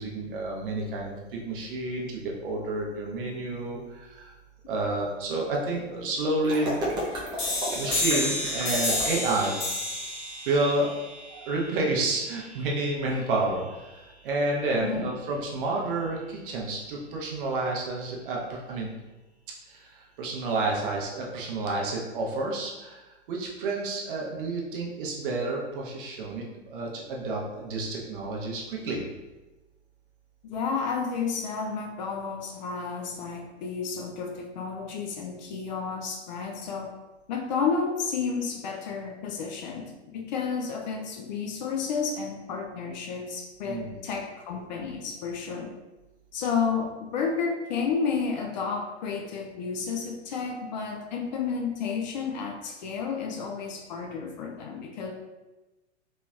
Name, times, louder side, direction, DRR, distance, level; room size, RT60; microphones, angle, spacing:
voice 1, 0.0-4.3 4.7-6.8 7.7-9.5 10.5-10.9 11.3-18.9 19.7-23.0 23.3-26.4 26.7-29.0 43.7-44.0, right 2 dB, 50° right, -2 dB, 0.8 m, -30 dB
sound 1, 6.4-9.5, equal, 15° right, 0.6 m, -32 dB
sound 2, 7.4-12.8, left 2 dB, 65° left, 1.4 m, -31 dB
voice 2, 14.8-15.1 30.4-36.9 37.3-45.7 46.3-55.1, left 5 dB, 40° left, 2 dB, 0.4 m, -31 dB
3.0 x 2.9 x 2.3 m, 1.1 s
figure-of-eight pair, 100°, 35 cm